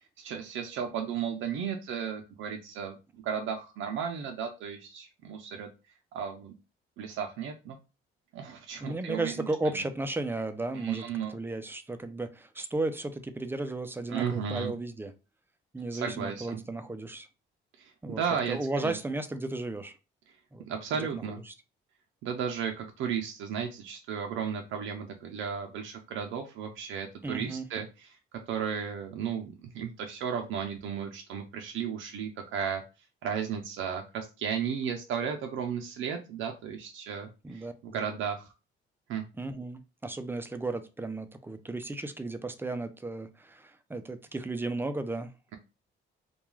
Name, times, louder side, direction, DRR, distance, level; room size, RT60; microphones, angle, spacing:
voice 1, 0.2-5.7 6.1-6.5 7.0-7.8 8.3-9.7 10.7-11.4 14.1-14.7 15.9-16.6 17.8-19.0 20.6-21.4 22.2-28.2 28.5-32.8 33.2-38.5 39.1-39.2, right 7 dB, 80° right, 0.5 m, -34 dB
voice 2, 8.8-15.1 15.7-17.3 18.0-18.2 18.5-20.0 20.5-20.6 21.1-21.5 27.2-27.6 37.4-38.0 39.4-45.3, right 2 dB, 10° right, 0.3 m, -34 dB
2.3 x 2.3 x 3.1 m
cardioid pair, 90°, 20 cm